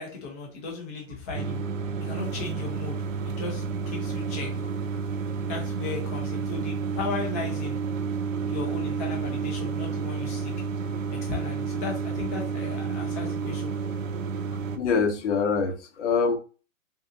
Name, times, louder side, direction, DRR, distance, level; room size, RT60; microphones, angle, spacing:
voice 1, 0.0-1.6 2.0-3.0 3.4-4.5 5.5-7.8 8.4-10.5 11.3-13.7, left 4 dB, 15° left, 0.4 m, -36 dB
sound 1, 1.3-14.8, right 5 dB, 75° right, 0.7 m, -30 dB
voice 2, 14.8-16.4, left 5 dB, 60° left, 0.8 m, -24 dB
3.7 x 2.7 x 2.6 m
hypercardioid pair, 150°, 39 cm